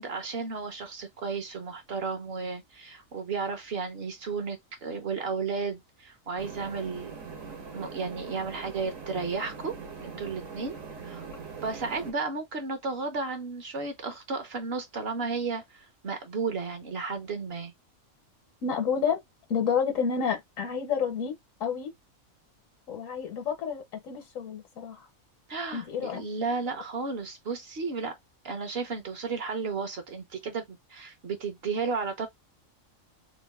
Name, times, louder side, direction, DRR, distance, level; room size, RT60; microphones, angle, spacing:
voice 1, 0.0-7.1 7.7-9.7 10.0-11.3 11.6-17.7 25.5-28.2 28.4-32.3, right 4 dB, 55° right, 0.9 m, -33 dB
sound 1, 6.4-12.1, right 5 dB, 70° right, 1.5 m, -42 dB
voice 2, 18.6-19.2 19.5-21.9 22.9-25.1 25.7-26.2, left 6 dB, 75° left, 1.2 m, -30 dB
3.1 x 2.5 x 3.4 m
omnidirectional pair, 1.4 m